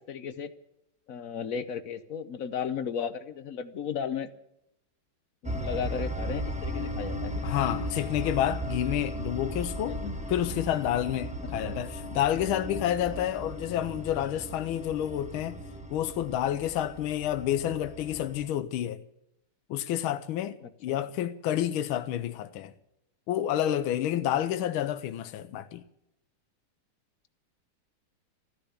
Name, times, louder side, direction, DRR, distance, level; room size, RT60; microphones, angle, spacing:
voice 1, 0.1-0.5 1.1-4.3 5.4-7.5 9.9-10.2 11.6-11.8 20.6-20.7, left 7 dB, 55° left, 0.9 m, -35 dB
sound 1, 5.4-18.5, equal, 5° right, 0.9 m, -36 dB
voice 2, 7.4-10.0 10.3-15.6 15.9-19.0 19.7-20.6 20.8-22.7 23.3-25.8, left 11 dB, 80° left, 1.6 m, -29 dB
14.5 x 10.0 x 9.6 m
omnidirectional pair, 2.3 m